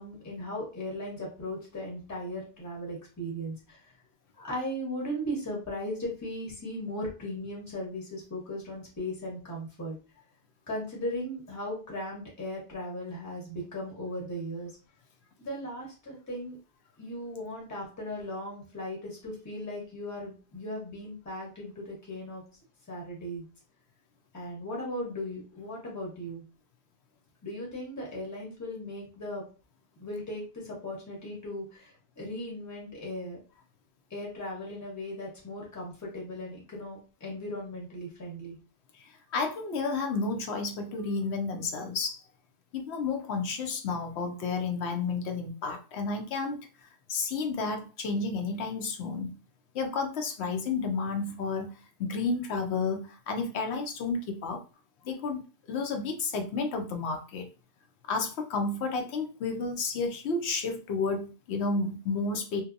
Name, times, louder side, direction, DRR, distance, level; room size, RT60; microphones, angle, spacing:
voice 1, 0.0-3.9 4.4-10.0 10.7-14.7 15.4-16.6 17.0-22.4 22.9-23.5 24.3-26.4 27.4-29.4 30.0-33.4 34.1-38.6, equal, 15° left, -3 dB, 0.9 m, -37 dB
voice 2, 39.0-42.2 42.7-49.4 49.7-54.6 55.0-57.5 58.1-62.6, left 4 dB, 75° left, 4 dB, 0.8 m, -31 dB
2.7 x 2.2 x 2.5 m, 0.35 s
omnidirectional pair, 1.1 m